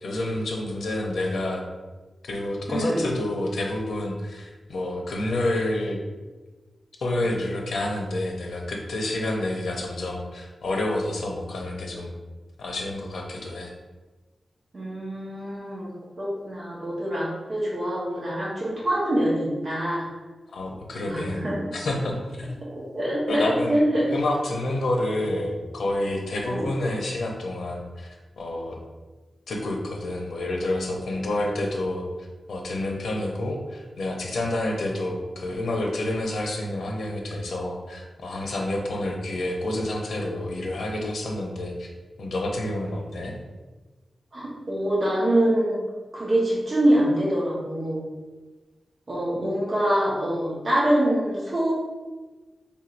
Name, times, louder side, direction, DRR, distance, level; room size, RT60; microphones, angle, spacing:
voice 1, 0.0-1.6 2.2-6.0 7.0-12.2 12.6-13.7 20.5-21.4 21.7-22.5 23.3-23.8 24.1-28.8 29.5-32.1 32.5-41.9 42.2-43.3, left 1 dB, 85° left, 1 dB, 0.7 m, -28 dB
voice 2, 2.7-3.0 14.7-15.9 16.2-20.0 21.1-21.7 22.7-24.0 26.5-26.7 44.3-45.8 46.1-48.0 49.1-51.7, right 1 dB, 40° right, -6 dB, 1.2 m, -25 dB
4.4 x 3.5 x 2.5 m, 1.2 s
wide cardioid pair, 145°, 0 cm